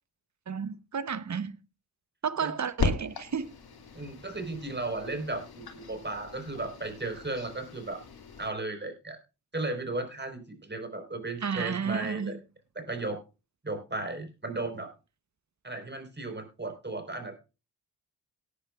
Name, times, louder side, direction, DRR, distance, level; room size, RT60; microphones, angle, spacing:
voice 1, 0.5-1.6 2.2-3.5 11.4-12.4, right 6 dB, 40° right, 1.1 m, -32 dB
sound 1, 2.8-8.5, left 5 dB, 60° left, 2.5 m, -37 dB
voice 2, 3.9-8.0 8.4-9.2 9.5-12.4 12.7-13.2 13.6-14.9 15.6-17.4, right 2 dB, 25° right, 4.7 m, -35 dB
18.5 x 10.0 x 2.5 m
supercardioid pair, 45°, 41 cm